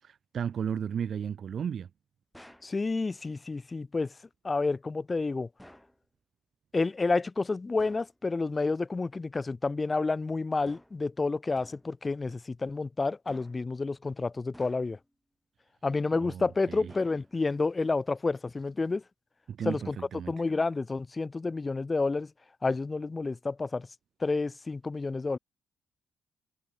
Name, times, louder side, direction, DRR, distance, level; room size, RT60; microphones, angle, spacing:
voice 1, 0.0-1.9 16.2-16.9 19.5-20.3, right 8 dB, 55° right, 0.9 m, -34 dB
sound 1, 2.3-2.8 5.6-6.0 7.8-8.2 10.6-11.1 11.6-12.0 13.3-13.7 14.5-15.1 16.9-17.5, equal, 5° left, 1.5 m, -53 dB
voice 2, 2.6-4.1 4.4-5.5 6.7-15.0 15.8-19.0 19.6-20.0 20.3-22.3 22.6-23.9 24.2-25.4, left 3 dB, 25° left, 0.4 m, -30 dB
cardioid pair, 90°, 0 cm